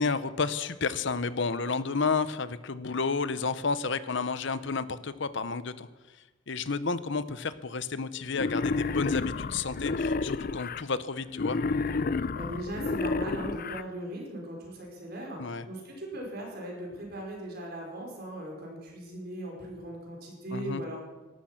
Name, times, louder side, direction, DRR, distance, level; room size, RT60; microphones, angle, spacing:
voice 1, 0.0-5.9 6.5-11.6 15.4-15.7 20.5-20.8, left 4 dB, 65° left, 14 dB, 0.8 m, -31 dB
Wild animals, 8.3-10.8 11.3-13.8, left 3 dB, 45° left, 0.5 m, -30 dB
voice 2, 12.3-21.1, right 1 dB, 50° right, 0 dB, 5.0 m, -39 dB
18.0 x 13.0 x 5.9 m, 1.2 s
head